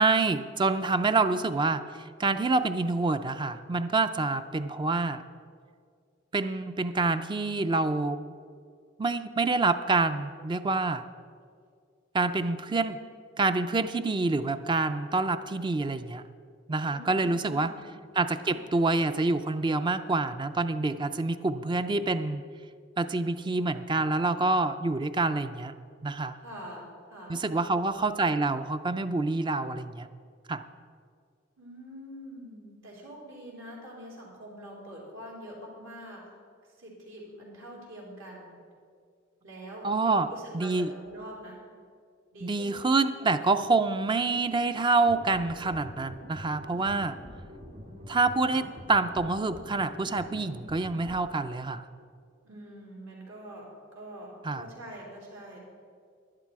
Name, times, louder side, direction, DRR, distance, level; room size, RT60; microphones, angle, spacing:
voice 1, 0.0-5.2 6.3-8.3 9.0-11.0 12.1-13.0 13.4-16.2 16.7-17.7 18.2-22.4 23.0-25.7 26.0-26.4 27.3-30.1 30.5-30.6 39.8-40.3 40.5-40.9 42.4-47.2 48.1-51.8 54.4-54.7, right 3 dB, 25° right, 11 dB, 0.4 m, -27 dB
voice 2, 16.9-17.9 18.4-18.9 26.4-28.1 31.6-36.3 36.8-38.6 39.4-41.6 42.3-42.9 52.4-55.6, equal, 75° right, -4 dB, 3.7 m, -45 dB
sound 1, 45.0-51.2, equal, 40° right, 2.2 m, -45 dB
11.5 x 10.5 x 4.7 m, 2.1 s
head